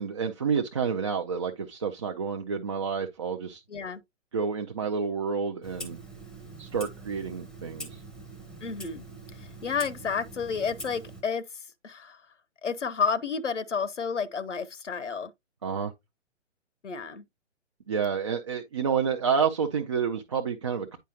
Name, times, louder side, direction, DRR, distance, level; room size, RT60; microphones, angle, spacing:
voice 1, 0.0-3.6 4.3-6.0 6.6-8.0 15.6-15.9 17.9-21.0, right 6 dB, 25° right, 0.5 m, -29 dB
voice 2, 3.7-4.0 8.6-9.1 9.4-11.4 11.8-12.2 12.6-15.3 16.8-17.2, left 6 dB, 70° left, 1.0 m, -31 dB
Clock, 5.6-11.2, right 2 dB, ahead, 0.8 m, -44 dB
9.1 x 4.7 x 2.8 m
figure-of-eight pair, 125°, 38 cm